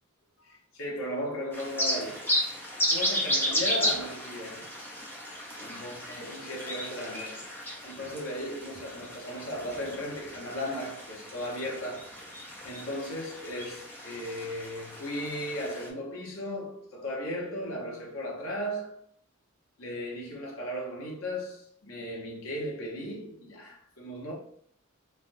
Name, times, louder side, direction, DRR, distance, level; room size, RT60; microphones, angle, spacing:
voice 1, 0.4-2.3 2.6-4.7 5.6-7.5 7.8-12.2 12.6-19.0 19.8-24.3, equal, 65° left, 0.9 m, -36 dB
sound 1, 1.5-15.9, equal, 10° left, 0.5 m, -34 dB
3.4 x 2.2 x 2.5 m
head